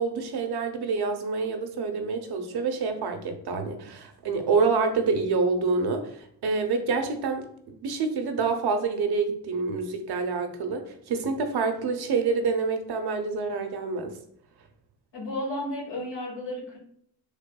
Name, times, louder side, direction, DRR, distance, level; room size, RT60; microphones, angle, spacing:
voice 1, 0.0-14.2, right 4 dB, 55° right, 6 dB, 0.7 m, -27 dB
voice 2, 15.1-16.8, left 1 dB, 70° left, -2 dB, 1.5 m, -33 dB
3.5 x 3.3 x 2.2 m, 0.68 s
supercardioid pair, 45°, 45 cm